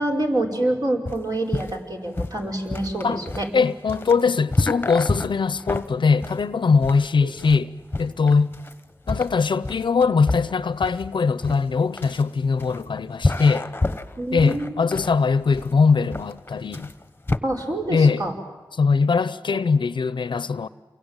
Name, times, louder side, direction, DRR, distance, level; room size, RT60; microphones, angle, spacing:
voice 1, 0.0-3.5 14.2-14.8 17.4-18.3, right 1 dB, 50° right, 5.5 m, -26 dB
sound 1, 1.0-17.4, left 2 dB, 25° left, 1.1 m, -29 dB
voice 2, 3.5-7.7 8.0-8.5 9.1-13.7 14.3-16.9 17.9-18.2 18.7-20.7, left 5 dB, 70° left, 0.8 m, -21 dB
28.5 x 22.5 x 9.1 m
wide cardioid pair, 75°, 8 cm